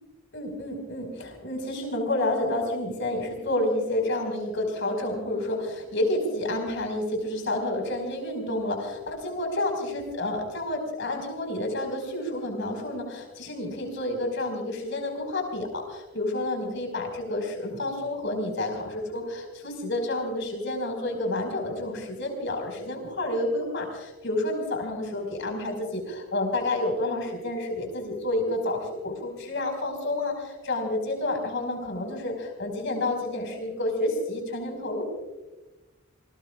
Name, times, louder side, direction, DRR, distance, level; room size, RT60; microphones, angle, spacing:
voice 1, 0.3-35.0, left 1 dB, 60° left, 3 dB, 5.2 m, -29 dB
29.5 x 20.0 x 2.4 m, 1.1 s
head